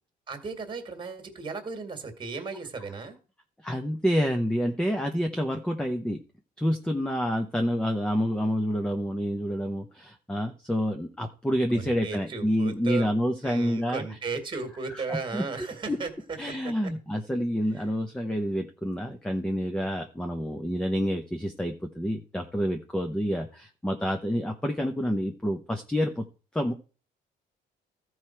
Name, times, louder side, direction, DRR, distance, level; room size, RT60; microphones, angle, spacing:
voice 1, 0.3-3.2 11.7-13.1 13.4-16.7, right 4 dB, 30° right, 7 dB, 1.9 m, -35 dB
voice 2, 3.6-6.2 6.6-14.0 14.9-15.4 15.9-16.0 16.4-26.2 26.5-26.7, equal, 5° left, 5 dB, 0.8 m, -28 dB
13.5 x 4.7 x 4.4 m, 0.37 s
cardioid pair, 110°, 17 cm